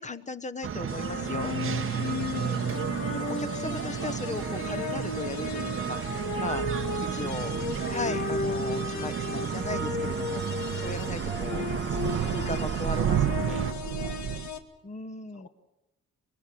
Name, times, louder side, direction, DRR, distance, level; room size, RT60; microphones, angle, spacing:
voice 1, 0.0-1.5 2.3-2.8 3.1-6.0 6.4-6.7 7.1-7.6 7.9-10.4 10.8-11.7 12.3-13.6 14.8-15.5, left 3 dB, 25° left, 13 dB, 1.1 m, -37 dB
sound 1, 0.6-13.7, right 8 dB, 45° right, 1.1 m, -32 dB
sound 2, 0.9-14.6, left 4 dB, 70° left, 2.2 m, -35 dB
voice 2, 1.3-2.3 7.1-7.2 13.8-14.4 15.3-15.5, left 6 dB, 55° left, 5 dB, 2.6 m, -51 dB
sound 3, 4.3-14.5, right 9 dB, 85° right, 1.3 m, -34 dB
24.0 x 21.5 x 7.6 m, 0.92 s
cardioid pair, 90°, 30 cm